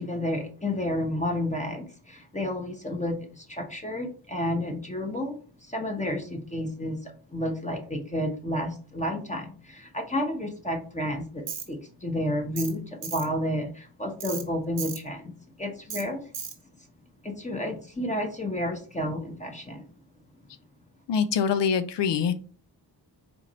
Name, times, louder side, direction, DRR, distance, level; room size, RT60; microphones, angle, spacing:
voice 1, 0.0-16.2 17.2-19.8, left 1 dB, 15° left, 2 dB, 1.1 m, -31 dB
Tools, 11.5-11.7 12.6-12.7 13.0-13.3 14.2-14.4 14.8-15.0 15.9-16.0 16.3-16.5, right 7 dB, 80° right, 1.1 m, -35 dB
voice 2, 21.1-22.3, left 7 dB, 85° left, 11 dB, 0.6 m, -24 dB
4.6 x 2.6 x 4.2 m, 0.39 s
cardioid pair, 60°, 41 cm